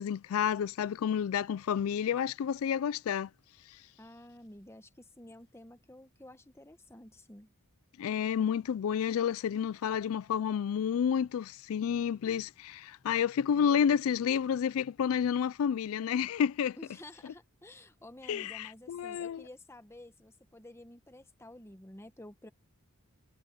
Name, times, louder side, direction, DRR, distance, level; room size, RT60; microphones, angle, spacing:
voice 1, 0.0-3.3 8.0-16.8 18.3-19.4, left 8 dB, 70° left, 0.3 m, -30 dB
voice 2, 4.0-7.5 16.8-22.5, left 1 dB, 10° left, 1.1 m, -51 dB
head